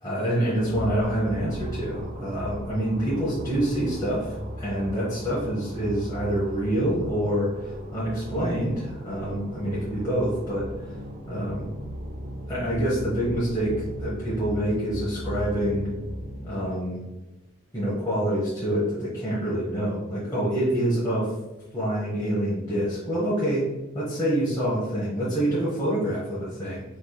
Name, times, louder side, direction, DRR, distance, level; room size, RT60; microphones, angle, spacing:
voice 1, 0.0-10.7 11.3-11.7 12.5-15.9 16.4-17.0 17.7-21.3 21.7-23.7 23.9-26.8, right 1 dB, 20° left, -9 dB, 1.2 m, -26 dB
sound 1, 0.6-16.8, equal, 45° right, 0.7 m, -37 dB
4.8 x 4.6 x 2.3 m, 1.0 s
head